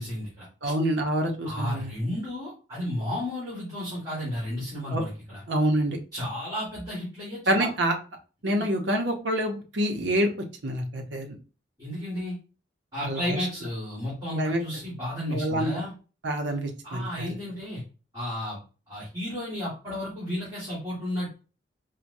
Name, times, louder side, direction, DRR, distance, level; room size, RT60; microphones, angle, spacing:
voice 1, 0.0-0.7 1.4-5.4 6.1-7.7 8.6-8.7 11.8-12.3 12.9-15.9 16.8-17.8 18.1-18.6 18.9-21.3, left 1 dB, 20° right, -9 dB, 1.7 m, -33 dB
voice 2, 0.6-1.9 4.9-5.0 5.5-6.0 7.5-7.9 8.4-10.3 10.6-11.3 13.0-13.4 14.3-14.6 15.3-15.7 16.2-17.3, right 1 dB, 75° right, 3 dB, 0.7 m, -26 dB
4.5 x 2.2 x 2.6 m, 0.35 s
head